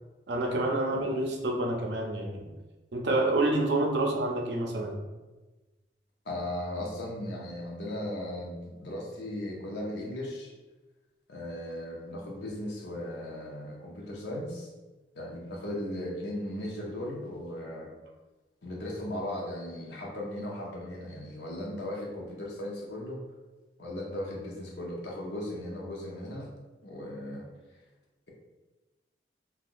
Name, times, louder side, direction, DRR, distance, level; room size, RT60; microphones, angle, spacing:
voice 1, 0.3-2.5 2.9-5.0, right 2 dB, 65° right, 1 dB, 0.5 m, -28 dB
voice 2, 6.2-10.5 11.3-14.7 15.1-17.9 18.6-23.2 23.8-26.5 26.8-27.5, left 1 dB, 65° left, -2 dB, 0.7 m, -37 dB
3.4 x 2.3 x 2.5 m, 1.2 s
head